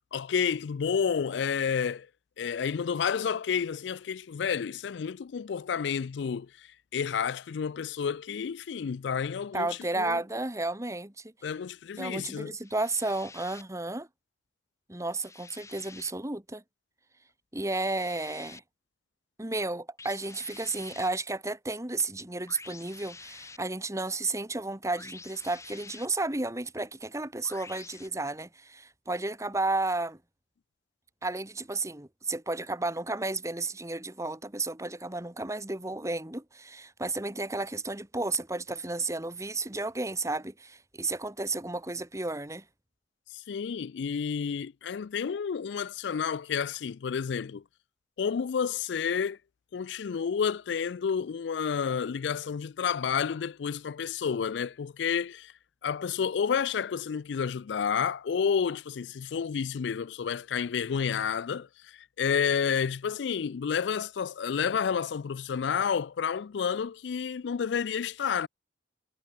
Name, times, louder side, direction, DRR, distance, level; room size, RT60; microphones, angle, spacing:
voice 1, 0.1-2.1 2.4-9.7 10.0-10.2 11.4-12.5 43.3-47.6 48.2-49.4 49.7-55.5 55.8-68.5, left 7 dB, 65° left, 0.4 m, -30 dB
voice 2, 9.5-11.3 12.0-14.1 14.9-16.6 17.5-18.6 19.4-30.2 31.2-42.6, right 2 dB, 15° right, 1.9 m, -32 dB
sound 1, 12.6-13.6 15.1-16.1 17.6-18.6 20.0-21.1 22.5-23.6 25.0-26.1 27.4-28.1, left 4 dB, 15° left, 1.3 m, -48 dB
head